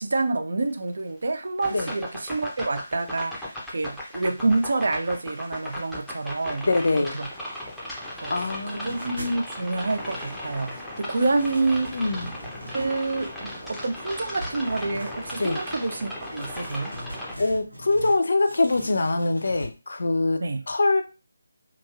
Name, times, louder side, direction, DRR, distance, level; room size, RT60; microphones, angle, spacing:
voice 1, 0.0-3.3 3.7-6.7 7.0-7.3 8.2-8.3 8.7-12.0 12.7-16.9 20.4-20.6, right 3 dB, 55° right, 0.5 m, -27 dB
sound 1, 1.6-17.4, left 1 dB, ahead, 0.6 m, -37 dB
voice 2, 6.7-7.2 8.3-9.0 11.9-12.3 15.4-15.6 17.4-20.4 20.7-21.0, left 2 dB, 55° left, 0.4 m, -23 dB
sound 2, 8.7-9.4 9.8-10.8 11.1-13.3 13.8-15.7 16.2-18.2 18.4-19.7, right 1 dB, 90° right, 0.9 m, -42 dB
3.0 x 2.5 x 2.3 m
figure-of-eight pair, 155°, 0 cm